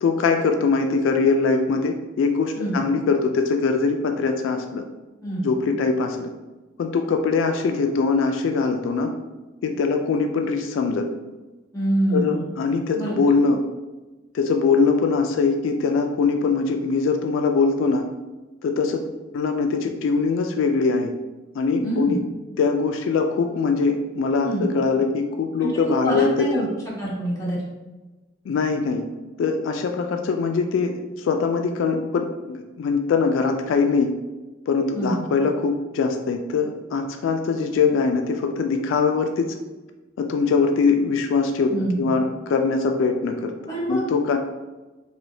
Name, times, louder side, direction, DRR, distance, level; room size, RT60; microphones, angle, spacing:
voice 1, 0.0-4.8 5.4-6.3 6.8-9.1 9.6-11.1 12.1-13.6 14.3-18.0 18.6-21.1 21.6-22.2 22.6-26.6 28.5-29.0 29.4-34.1 34.7-39.5 40.2-41.7 42.0-43.5 43.9-44.4, left 4 dB, 85° left, 5 dB, 0.3 m, -22 dB
voice 2, 11.7-12.4 13.0-13.2 21.8-22.1 24.4-24.7 25.6-26.7 27.0-27.6 34.9-35.2 41.7-42.1 43.7-44.0, right 1 dB, 20° left, -7 dB, 1.1 m, -25 dB
3.3 x 2.9 x 2.7 m, 1.2 s
head